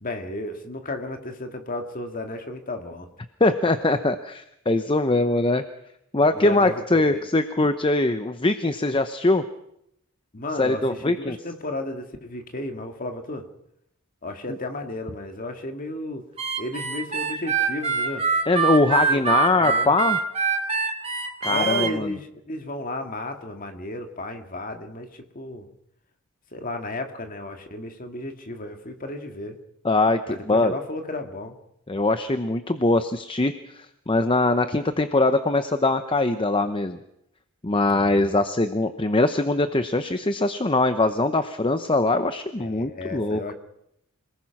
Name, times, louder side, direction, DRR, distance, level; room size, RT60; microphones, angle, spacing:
voice 1, 0.0-3.1 6.3-7.2 10.3-13.5 14.2-16.3 16.6-18.3 19.1-19.9 21.5-25.7 26.5-29.6 30.3-31.6 37.8-38.4 42.6-43.5, left 2 dB, 40° left, 5 dB, 2.1 m, -33 dB
voice 2, 3.4-5.6 6.1-9.4 10.6-11.4 18.5-20.2 21.4-22.1 29.8-30.7 31.9-37.0 37.6-43.4, left 2 dB, 25° left, 10 dB, 0.8 m, -22 dB
Harmonica, 16.4-21.9, right 5 dB, 30° right, 2.5 m, -24 dB
26.5 x 19.0 x 6.0 m, 0.78 s
head